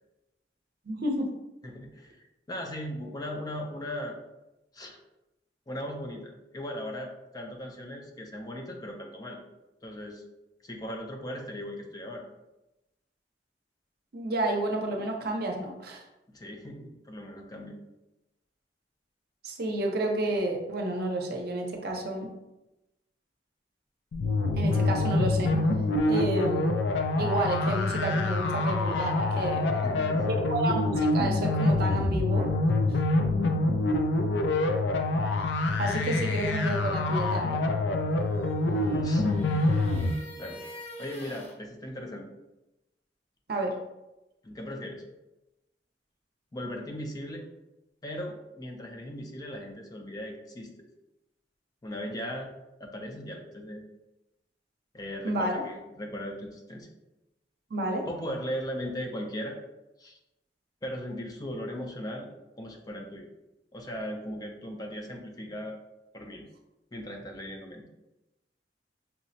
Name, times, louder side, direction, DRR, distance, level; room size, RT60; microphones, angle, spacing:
voice 1, 0.9-1.3 14.1-16.0 19.4-22.3 24.5-25.5 26.1-26.8 27.2-29.7 30.3-32.5 35.8-37.7 43.5-43.8 55.2-55.6 57.7-58.0, right 1 dB, 60° right, 2 dB, 0.6 m, -30 dB
voice 2, 1.6-4.2 4.7-5.0 5.7-9.4 9.8-10.2 10.6-12.3 16.3-17.8 29.7-30.4 39.0-39.3 40.4-40.6 41.0-42.3 44.4-45.0 46.5-47.5 48.0-50.7 51.8-52.5 52.8-53.8 54.9-56.9 58.1-59.6 60.0-60.2 60.8-62.3 62.6-63.3 63.7-65.8 66.1-66.4 66.9-67.9, equal, 20° left, 2 dB, 0.4 m, -38 dB
sound 1, 24.1-40.1, left 2 dB, 85° left, 0.4 m, -26 dB
sound 2, 38.0-41.6, equal, 40° left, 1.0 m, -46 dB
5.6 x 2.0 x 2.7 m, 0.96 s
head